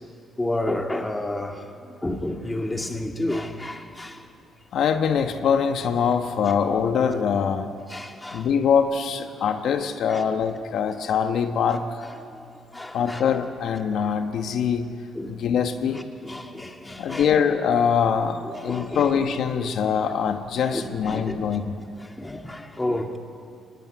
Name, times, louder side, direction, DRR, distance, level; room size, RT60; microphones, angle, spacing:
voice 1, 0.4-4.2 7.9-8.5 10.1-10.2 12.3-12.4 12.7-13.2 15.1-15.3 15.9-17.3 18.4-19.2 20.6-21.6 22.0-23.2, left 1 dB, 15° left, 2.4 m, -31 dB
voice 2, 4.7-7.7 8.3-12.1 12.9-14.9 15.3-16.0 17.0-21.8, left 7 dB, 70° left, 1.3 m, -23 dB
22.0 x 19.0 x 9.8 m
cardioid pair, 90°, 0 cm